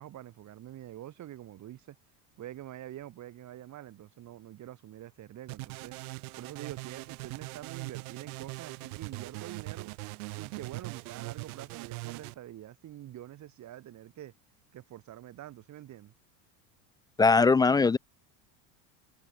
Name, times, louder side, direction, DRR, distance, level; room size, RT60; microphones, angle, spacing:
voice 1, 0.0-2.0 2.4-5.9 6.4-9.9 10.4-14.3 14.7-16.1, right 13 dB, 40° right, 5.8 m, -46 dB
sound 1, 5.5-12.3, right 27 dB, 75° right, 5.2 m, -41 dB
voice 2, 17.2-18.0, left 4 dB, 10° left, 0.3 m, -21 dB
supercardioid pair, 135°, 44 cm